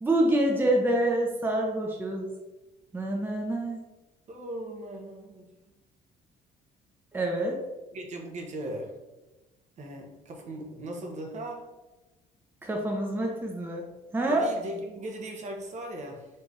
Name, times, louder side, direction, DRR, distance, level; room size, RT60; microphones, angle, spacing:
voice 1, 0.0-2.3 2.9-3.8 7.1-7.6 12.6-13.8 14.1-14.4, right 1 dB, 10° right, 0 dB, 0.7 m, -26 dB
voice 2, 4.3-5.7 7.9-8.9 9.8-11.7 14.3-16.3, right 1 dB, 45° right, 2 dB, 0.9 m, -38 dB
4.4 x 3.4 x 3.1 m, 1.1 s
cardioid pair, 110°, 17 cm